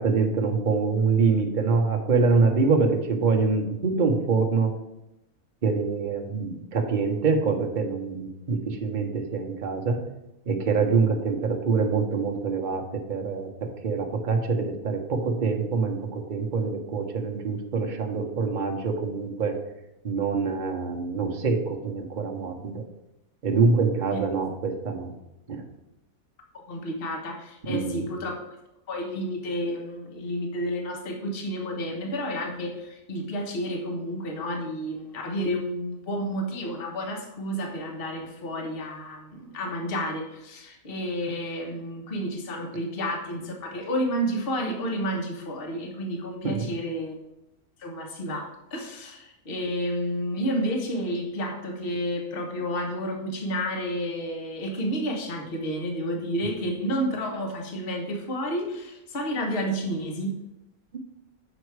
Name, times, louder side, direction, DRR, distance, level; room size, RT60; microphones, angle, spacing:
voice 1, 0.0-4.7 5.6-10.0 10.5-19.5 20.0-22.8 23.4-25.1 25.5-25.6 27.7-28.0 46.4-46.6, right 4 dB, 35° right, 3 dB, 1.0 m, -25 dB
voice 2, 26.7-28.4 28.9-47.1 47.8-60.3, equal, 40° left, 2 dB, 1.3 m, -30 dB
7.6 x 5.8 x 4.7 m, 0.91 s
omnidirectional pair, 1.6 m